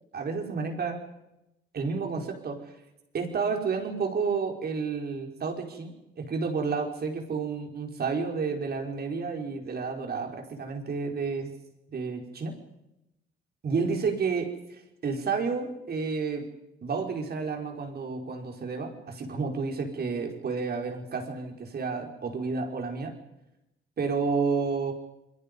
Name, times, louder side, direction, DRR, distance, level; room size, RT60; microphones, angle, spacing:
voice 1, 0.1-1.0 1.7-2.7 3.1-11.6 11.9-12.6 13.6-16.5 16.8-23.2 24.0-24.9, right 5 dB, 50° right, 3 dB, 4.8 m, -31 dB
28.0 x 22.0 x 5.4 m, 0.91 s
cardioid pair, 90°, 20 cm